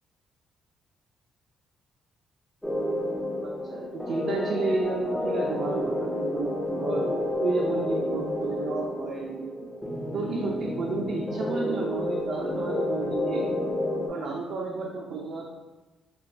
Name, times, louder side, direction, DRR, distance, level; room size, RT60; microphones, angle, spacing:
sound 1, 2.6-14.1, left 1 dB, 10° left, 0.4 m, -30 dB
voice 1, 3.4-9.5 10.1-13.7 14.0-15.5, right 3 dB, 60° right, -2 dB, 0.4 m, -32 dB
2.9 x 2.2 x 2.5 m, 1.1 s
cardioid pair, 90°, 0 cm